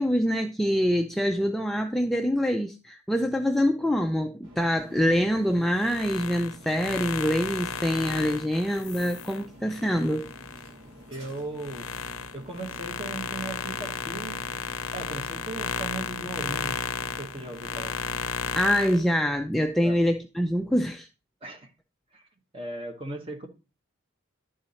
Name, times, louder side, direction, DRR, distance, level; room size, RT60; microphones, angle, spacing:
voice 1, 0.0-10.3 18.6-21.1, equal, ahead, 0.3 m, -25 dB
sound 1, 4.4-18.7, equal, 85° right, 2.2 m, -49 dB
sound 2, 5.6-10.7 11.2-19.0, left 6 dB, 80° left, 0.6 m, -34 dB
voice 2, 11.1-11.9 12.3-14.4 14.9-16.8 17.2-18.0 19.8-20.0 21.4-21.7 22.1-22.3 22.5-23.5, right 2 dB, 25° right, 1.2 m, -37 dB
11.0 x 3.9 x 4.1 m
head